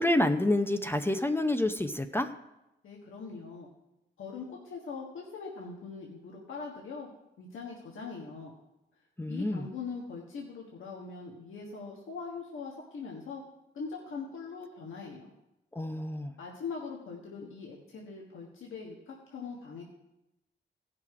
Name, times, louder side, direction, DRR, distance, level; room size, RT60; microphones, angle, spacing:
voice 1, 0.0-2.3 9.2-9.7 15.7-16.3, left 1 dB, 10° left, 7 dB, 0.7 m, -28 dB
voice 2, 2.8-3.7 4.2-7.1 7.4-8.5 9.2-13.4 13.7-15.3 16.4-19.8, left 5 dB, 90° left, -2 dB, 1.5 m, -41 dB
15.5 x 5.9 x 4.8 m, 0.91 s
cardioid pair, 75°, 20 cm